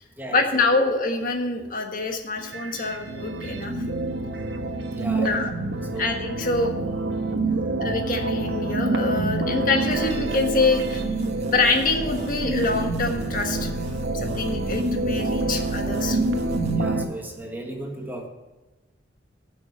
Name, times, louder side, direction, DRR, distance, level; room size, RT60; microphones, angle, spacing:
voice 1, 0.3-3.7 5.2-5.5 6.0-6.7 7.8-11.0 11.4-13.7 14.1-16.2, left 3 dB, 50° left, 4 dB, 1.4 m, -25 dB
sound 1, 2.4-17.0, right 2 dB, 80° right, 1.2 m, -27 dB
voice 2, 4.9-5.4 5.7-6.1 16.8-18.3, right 1 dB, 10° right, 2 dB, 1.4 m, -36 dB
sound 2, 9.9-16.8, right 1 dB, 35° right, 1.7 m, -36 dB
11.0 x 6.2 x 7.2 m, 1.2 s
head